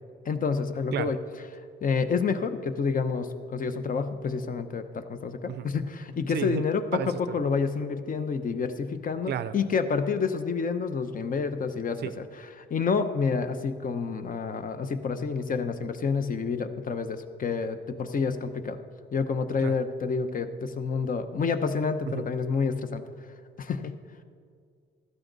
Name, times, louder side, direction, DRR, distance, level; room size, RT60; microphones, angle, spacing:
voice 1, 0.2-1.2 1.8-6.8 7.3-12.2 12.6-18.8 19.1-23.0 23.6-23.9, left 5 dB, 45° left, 9 dB, 1.0 m, -29 dB
voice 2, 6.3-6.7 6.9-7.4 9.3-9.6 12.0-12.1 19.6-19.8 22.1-22.3, right 9 dB, 55° right, 14 dB, 0.5 m, -32 dB
15.5 x 13.0 x 4.0 m, 2.1 s
cardioid pair, 90°, 20 cm